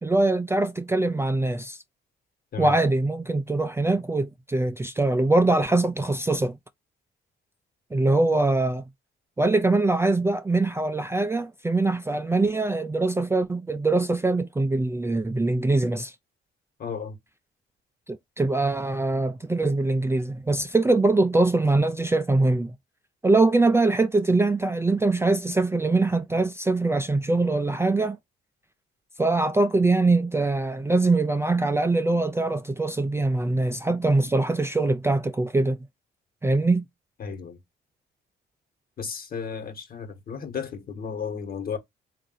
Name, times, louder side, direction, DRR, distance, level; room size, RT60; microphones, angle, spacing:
voice 1, 0.0-1.8 2.6-6.6 7.9-8.9 9.4-16.1 18.1-22.7 23.2-28.2 29.2-35.8 36.4-36.8, right 2 dB, 15° right, 0.4 m, -23 dB
voice 2, 16.8-17.2 37.2-37.6 39.0-41.8, left 6 dB, 50° left, 1.4 m, -34 dB
3.5 x 2.6 x 3.8 m
cardioid pair, 90°, 20 cm